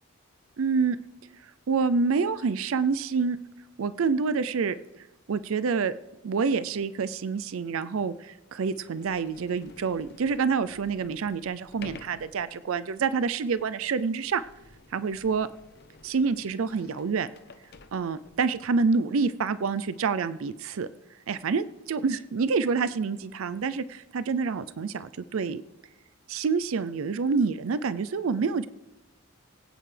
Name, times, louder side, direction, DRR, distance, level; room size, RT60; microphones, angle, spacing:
voice 1, 0.6-1.0 1.7-3.4 3.8-4.8 5.3-5.9 6.2-14.4 14.9-15.5 16.0-17.3 17.9-20.9 21.3-25.6 26.3-28.7, right 5 dB, 70° right, 14 dB, 0.4 m, -27 dB
Sliding door, 8.7-18.6, left 3 dB, 50° left, 0.7 m, -52 dB
22.5 x 8.8 x 3.3 m, 1.0 s
head